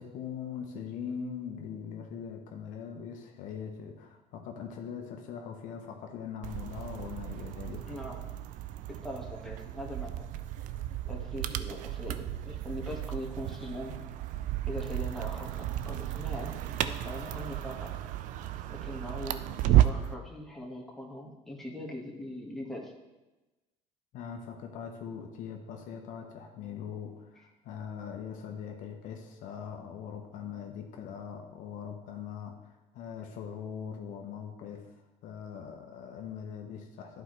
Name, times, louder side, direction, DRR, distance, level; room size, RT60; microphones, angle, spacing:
voice 1, 0.0-8.0 24.1-34.9 35.2-37.2, left 7 dB, 65° left, 3 dB, 0.9 m, -41 dB
sound 1, 6.4-20.1, right 13 dB, 65° right, 0.4 m, -33 dB
voice 2, 7.9-8.3 8.9-10.3 11.1-13.9 14.7-17.9 18.7-22.9, left 1 dB, ahead, -2 dB, 1.5 m, -41 dB
11.0 x 4.6 x 3.2 m, 1.1 s
supercardioid pair, 90°, 14 cm